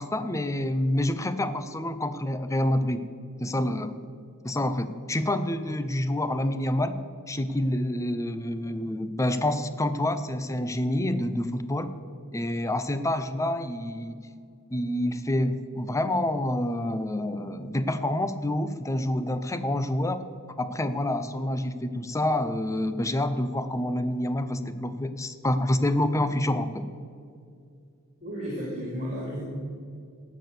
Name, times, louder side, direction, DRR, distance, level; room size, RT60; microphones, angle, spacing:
voice 1, 0.0-3.1 3.4-3.9 4.4-7.0 7.3-11.9 12.3-14.2 14.7-20.2 20.6-26.8, left 1 dB, 15° left, 11 dB, 0.5 m, -27 dB
voice 2, 28.2-29.4, equal, 30° right, -5 dB, 2.9 m, -33 dB
17.5 x 6.2 x 6.7 m, 2.4 s
head